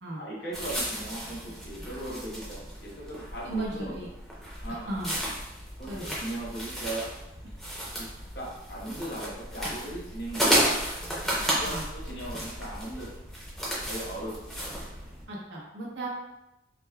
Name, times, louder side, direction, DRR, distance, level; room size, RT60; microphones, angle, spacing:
voice 1, 0.1-3.9 4.6-4.9 5.8-7.1 8.0-8.1 8.3-10.9 11.3-13.1 13.9-14.4, right 1 dB, 65° left, -5 dB, 1.1 m, -38 dB
sound 1, 0.5-15.2, right 1 dB, ahead, 0.7 m, -33 dB
voice 2, 3.4-4.1 4.9-5.2 5.9-6.2 11.6-11.9 15.3-16.1, right 2 dB, 75° right, -4 dB, 1.0 m, -35 dB
5.0 x 2.2 x 2.3 m, 0.92 s
head